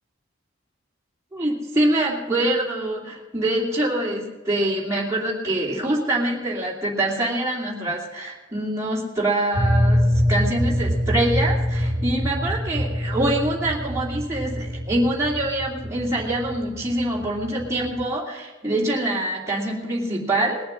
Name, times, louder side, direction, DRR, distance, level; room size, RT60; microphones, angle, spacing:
voice 1, 1.3-20.6, right 1 dB, 15° right, -5 dB, 2.7 m, -25 dB
sound 1, 9.5-18.1, equal, 80° right, 1.7 m, -25 dB
20.5 x 7.2 x 6.3 m, 1.2 s
head